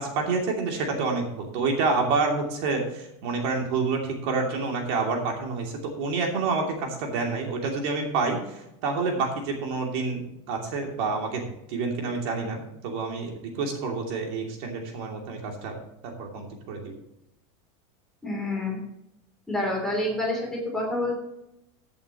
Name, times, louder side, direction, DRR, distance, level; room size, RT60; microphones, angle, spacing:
voice 1, 0.0-15.8 16.0-16.9, right 4 dB, 50° right, 1 dB, 2.7 m, -28 dB
voice 2, 18.2-18.8 19.5-21.1, left 1 dB, 5° left, -2 dB, 3.0 m, -28 dB
14.5 x 8.5 x 2.9 m, 0.85 s
supercardioid pair, 175°, 16 cm